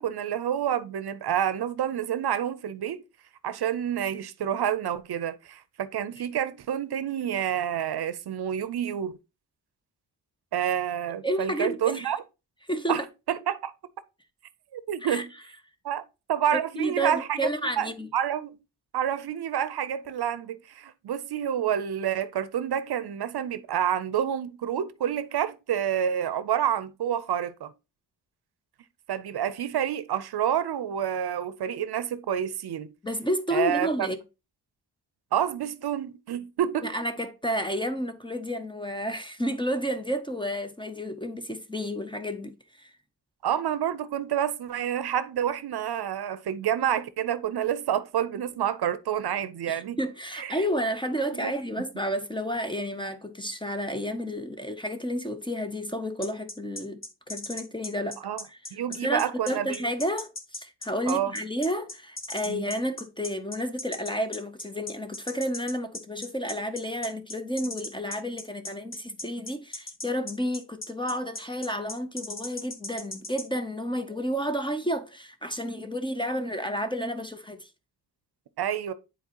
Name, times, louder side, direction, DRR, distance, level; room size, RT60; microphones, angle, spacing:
voice 1, 0.0-3.0 3.4-9.2 10.5-12.2 12.9-13.0 13.3-13.7 14.7-15.3 15.8-16.0 16.3-17.5 17.8-18.6 18.9-27.7 29.1-32.9 33.5-34.1 35.3-36.9 43.4-50.0 50.3-50.6 51.3-51.5 58.2-58.4 58.7-59.9 61.1-61.3 62.5-62.7 78.6-78.9, right 9 dB, 65° right, 0.6 m, -28 dB
voice 2, 11.2-12.1 12.7-13.0 15.0-15.2 16.8-18.1 33.0-34.2 36.8-42.9 49.7-58.2 58.5-58.6 58.9-77.7, equal, 10° left, 0.5 m, -31 dB
sound 1, 56.2-73.5, left 2 dB, 30° left, 1.1 m, -37 dB
9.8 x 4.2 x 2.8 m
wide cardioid pair, 160°, 41 cm